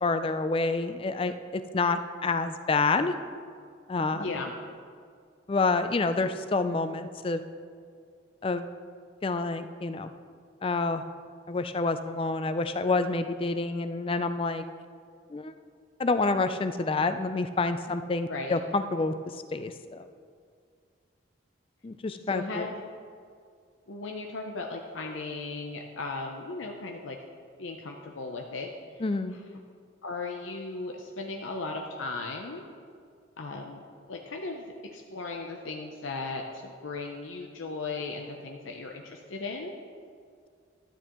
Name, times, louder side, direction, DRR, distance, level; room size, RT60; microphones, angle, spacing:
voice 1, 0.0-3.1 3.9-4.3 5.5-7.4 8.4-8.6 9.2-10.1 10.6-11.0 11.5-14.6 15.3-15.5 16.0-19.1 19.5-20.1 21.8-22.7 29.0-29.4, left 3 dB, 30° left, 10 dB, 0.4 m, -28 dB
voice 2, 4.1-4.5 18.3-18.6 22.3-22.8 23.9-27.2 27.6-28.7 28.9-29.0 29.3-29.4 30.0-32.7 33.4-33.8 34.1-39.7, left 3 dB, 85° left, 2 dB, 0.6 m, -36 dB
12.5 x 9.1 x 3.0 m, 2.2 s
head